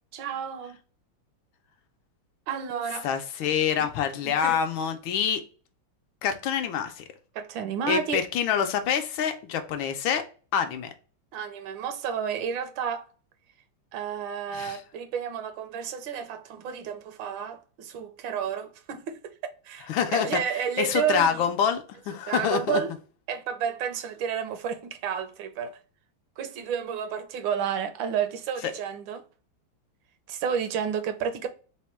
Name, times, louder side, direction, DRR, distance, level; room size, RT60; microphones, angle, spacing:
voice 1, 0.1-0.8 2.5-3.1 3.8-3.9 4.2-4.6 7.3-8.2 11.3-13.1 13.9-19.3 19.6-21.5 22.3-22.9 23.3-25.8 26.4-29.2 30.3-31.5, right 7 dB, 75° right, 1.3 m, -31 dB
voice 2, 3.0-5.4 6.2-7.0 7.9-10.2 10.5-10.9 14.5-14.8 19.9-20.3 20.8-22.8, left 8 dB, 75° left, 1.3 m, -26 dB
4.1 x 2.2 x 4.3 m
omnidirectional pair, 2.3 m